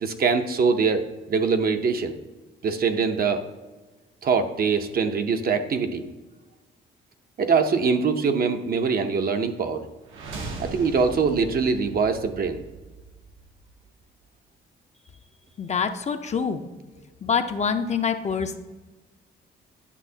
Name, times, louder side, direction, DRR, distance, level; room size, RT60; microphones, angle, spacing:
voice 1, 0.0-2.1 2.6-3.4 4.2-6.0 7.4-9.8 10.6-12.6, right 5 dB, 50° right, 7 dB, 0.7 m, -23 dB
sound 1, 10.0-14.0, right 3 dB, 80° right, 1.0 m, -39 dB
voice 2, 15.6-16.7 17.2-18.6, left 6 dB, 35° left, 7 dB, 0.5 m, -26 dB
9.9 x 6.1 x 2.8 m, 1.2 s
cardioid pair, 90°, 20 cm